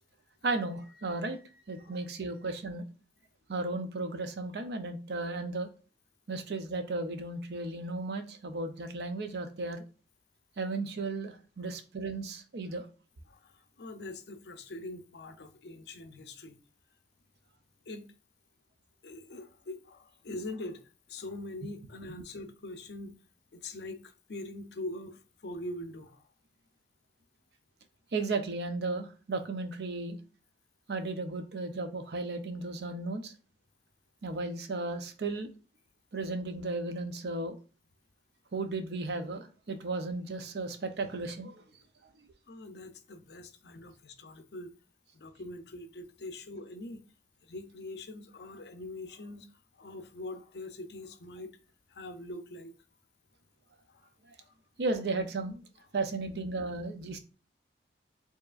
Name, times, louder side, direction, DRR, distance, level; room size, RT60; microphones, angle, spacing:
voice 1, 0.4-1.4 1.7-2.9 3.5-5.7 6.3-9.8 10.6-12.9 22.1-22.2 28.1-30.2 30.9-33.3 34.2-35.5 36.1-37.6 38.5-41.6 42.2-42.3 54.8-55.6 55.9-57.2, right 3 dB, 70° right, 0.5 m, -35 dB
voice 2, 13.3-16.6 17.9-18.1 19.0-20.8 21.1-23.2 23.5-26.3 42.5-44.7 45.1-47.0 47.4-49.5 49.7-51.6 51.9-52.7 53.9-54.0 54.4-54.5, left 2 dB, 70° left, 0.5 m, -43 dB
4.6 x 2.9 x 2.4 m
head